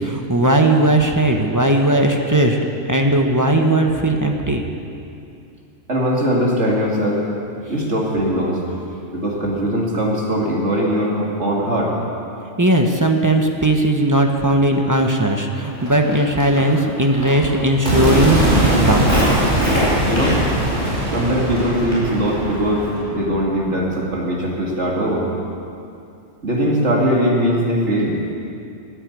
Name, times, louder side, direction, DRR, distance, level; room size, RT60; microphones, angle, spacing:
voice 1, 0.0-2.6 2.9-4.6 12.6-19.1, right 1 dB, 15° right, 3 dB, 1.0 m, -17 dB
voice 2, 5.9-7.2 7.7-8.6 9.1-11.9 20.0-20.4 21.1-25.3 26.4-28.2, equal, 60° right, -3 dB, 2.8 m, -20 dB
Walk footsteps, 15.6-23.0, equal, 25° left, 4.5 m, -28 dB
sound 1, 17.9-24.1, right 1 dB, 35° right, 4.1 m, -20 dB
14.0 x 9.9 x 8.4 m, 2.6 s
omnidirectional pair, 1.3 m